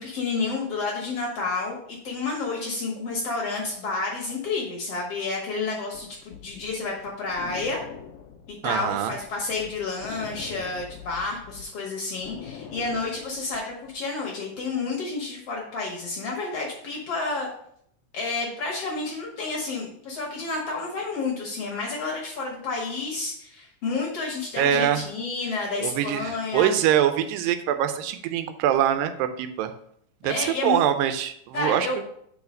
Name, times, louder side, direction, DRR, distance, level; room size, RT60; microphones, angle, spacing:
voice 1, 0.0-7.8 8.5-17.5 18.1-26.7 30.2-30.8 31.5-32.0, left 3 dB, 60° left, -2 dB, 1.8 m, -30 dB
sound 1, 5.9-11.6 12.0-13.9, left 7 dB, 85° left, 1.3 m, -43 dB
voice 2, 8.6-9.1 24.6-25.0 25.8-29.7 30.2-31.9, right 10 dB, 90° right, 9 dB, 2.3 m, -24 dB
4.9 x 4.8 x 5.2 m, 0.67 s
omnidirectional pair, 3.9 m